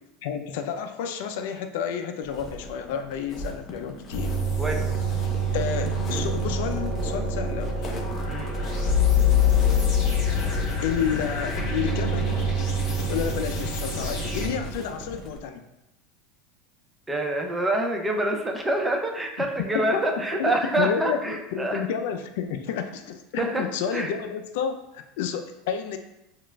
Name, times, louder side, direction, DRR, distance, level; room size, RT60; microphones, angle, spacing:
voice 1, 0.2-4.3 5.5-7.9 10.8-12.6 13.1-15.7 19.7-20.0 20.4-26.0, left 7 dB, 75° left, 7 dB, 0.3 m, -30 dB
sound 1, 2.2-15.4, left 2 dB, 30° left, 0.7 m, -39 dB
sound 2, 4.1-14.5, left 2 dB, 55° left, 1.4 m, -25 dB
voice 2, 4.6-5.0 8.3-8.5 17.1-21.8 23.4-23.6 23.9-24.1, right 1 dB, 10° right, 2 dB, 0.5 m, -26 dB
6.3 x 2.4 x 2.2 m, 0.90 s
supercardioid pair, 130°, 0 cm